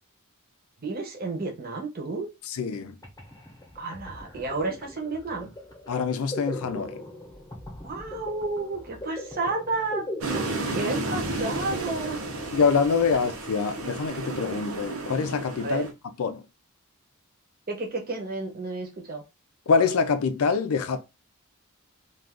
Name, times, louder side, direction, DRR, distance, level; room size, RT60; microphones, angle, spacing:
voice 1, 0.8-2.3 3.7-5.5 7.8-10.1 10.7-12.2 15.6-15.8 17.7-19.2, right 3 dB, 45° right, 0.8 m, -31 dB
voice 2, 2.5-3.0 5.9-7.0 10.7-10.8 12.5-15.9 16.2-16.4 19.7-21.0, left 5 dB, 75° left, 0.5 m, -25 dB
sound 1, 2.7-2.8 3.0-13.6, left 1 dB, 15° left, 0.8 m, -40 dB
sound 2, 10.2-15.9, right 2 dB, 75° right, 0.7 m, -32 dB
2.4 x 2.4 x 3.5 m
head